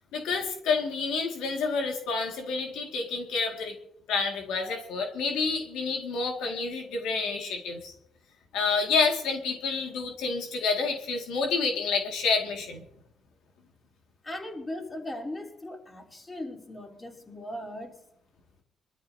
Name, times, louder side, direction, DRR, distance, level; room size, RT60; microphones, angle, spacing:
voice 1, 0.1-3.7 4.1-7.9 8.5-12.8, left 4 dB, 90° left, 2 dB, 2.1 m, -29 dB
voice 2, 14.2-18.0, left 1 dB, 20° left, 1 dB, 3.4 m, -38 dB
26.0 x 13.0 x 2.8 m, 0.77 s
cardioid pair, 90°, 0 cm